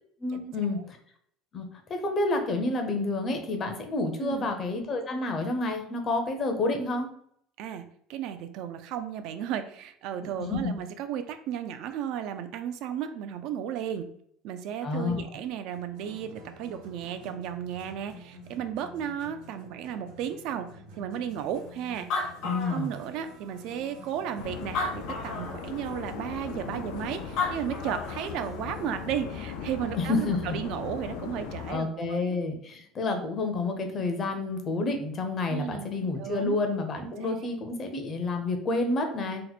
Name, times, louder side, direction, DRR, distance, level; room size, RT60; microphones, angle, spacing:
voice 1, 0.2-1.0 1.5-7.1 10.4-10.7 14.8-15.2 22.4-22.9 30.0-30.6 31.7-39.4, left 2 dB, 30° left, 4 dB, 0.5 m, -29 dB
voice 2, 4.2-4.5 7.6-7.8 8.1-14.1 14.4-20.7 21.0-32.4 35.5-35.9 36.2-36.6 37.0-37.4, right 9 dB, 60° right, 8 dB, 0.3 m, -34 dB
sound 1, 15.7-28.8, left 1 dB, 85° right, 0.9 m, -49 dB
Animal, 21.7-21.8 21.9-23.4 24.0-24.1 24.6-25.6 27.1-27.2 27.4-28.3, left 4 dB, 60° left, 0.8 m, -32 dB
sound 2, 24.4-31.8, left 6 dB, 85° left, 0.4 m, -38 dB
2.9 x 2.1 x 4.0 m, 0.66 s
cardioid pair, 155°, 0 cm